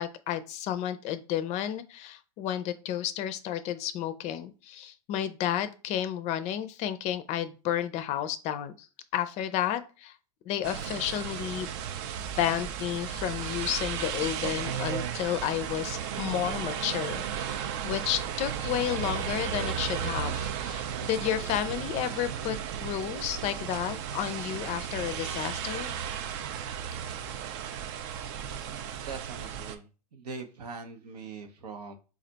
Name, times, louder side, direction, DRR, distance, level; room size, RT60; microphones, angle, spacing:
voice 1, 0.0-8.9 9.1-10.1 10.5-11.7 12.4-22.6 22.8-25.9, left 11 dB, 35° left, 12 dB, 0.4 m, -32 dB
sound 1, 10.6-29.8, right 8 dB, 50° right, 0.5 m, -34 dB
voice 2, 29.1-32.0, right 4 dB, 85° right, 6 dB, 0.8 m, -42 dB
3.3 x 2.4 x 3.9 m, 0.34 s
hypercardioid pair, 125°, 20 cm